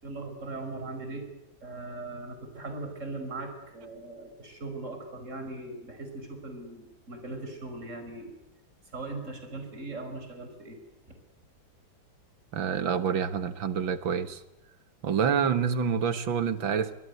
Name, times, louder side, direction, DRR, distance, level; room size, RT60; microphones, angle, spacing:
voice 1, 0.0-1.2 1.6-8.3 8.9-10.8 11.1-11.2, right 2 dB, 35° right, 6 dB, 5.5 m, -39 dB
voice 2, 12.5-14.4 15.0-16.9, right 7 dB, 75° right, 12 dB, 2.3 m, -27 dB
25.5 x 22.0 x 8.2 m, 0.92 s
omnidirectional pair, 2.1 m